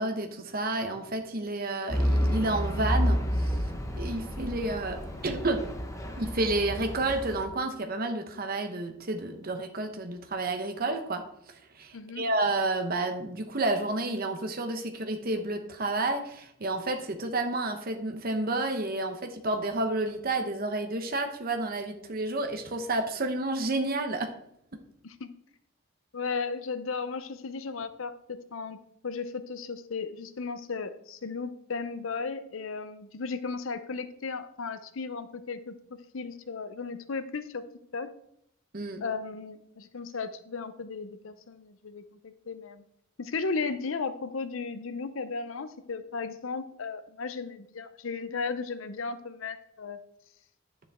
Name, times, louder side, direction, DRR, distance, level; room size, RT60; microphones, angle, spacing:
voice 1, 0.0-3.6 4.0-5.6 6.2-11.2 11.7-24.3 38.7-39.0, right 2 dB, 45° right, 5 dB, 1.0 m, -30 dB
Truck / Idling, 1.9-7.4, equal, 15° left, 1.1 m, -30 dB
voice 2, 11.9-12.2 25.0-25.3 26.1-28.8 29.0-35.8 36.1-37.7 37.9-38.1 39.0-42.8 43.2-50.0, left 4 dB, 75° left, 12 dB, 0.7 m, -35 dB
10.5 x 7.3 x 3.6 m, 0.72 s
head